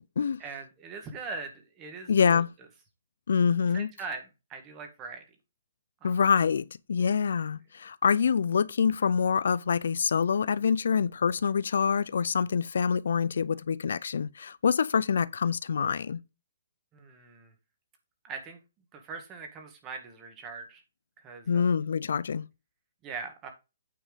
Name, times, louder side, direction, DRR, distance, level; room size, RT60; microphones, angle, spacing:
voice 1, 0.4-2.4 3.7-5.2 6.0-6.2 16.9-17.5 18.2-18.6 18.9-20.8 21.2-21.7 23.0-23.5, right 4 dB, 15° right, 1.6 m, -41 dB
voice 2, 2.1-2.5 3.3-3.9 6.0-16.2 21.5-22.4, left 6 dB, 65° left, 0.4 m, -26 dB
8.9 x 4.4 x 5.1 m
hypercardioid pair, 170°, 0 cm